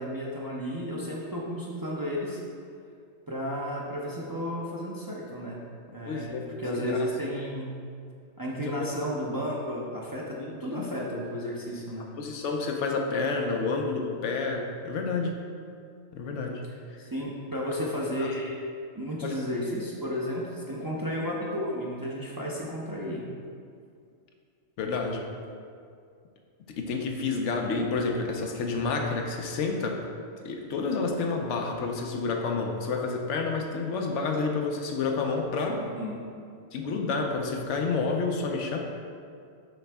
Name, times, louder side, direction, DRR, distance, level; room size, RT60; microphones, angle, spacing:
voice 1, 0.0-2.4 3.3-5.6 5.9-7.7 8.4-12.1 17.0-18.6 18.9-23.2 35.7-36.2, equal, 25° right, -4 dB, 0.6 m, -33 dB
voice 2, 6.0-7.1 8.7-8.9 10.4-10.9 12.2-15.4 16.1-16.7 18.2-18.3 19.2-19.5 24.8-25.2 26.7-30.0 30.4-35.8 36.7-38.8, left 4 dB, 85° left, 2 dB, 1.0 m, -29 dB
6.3 x 5.2 x 3.4 m, 2.3 s
omnidirectional pair, 1.2 m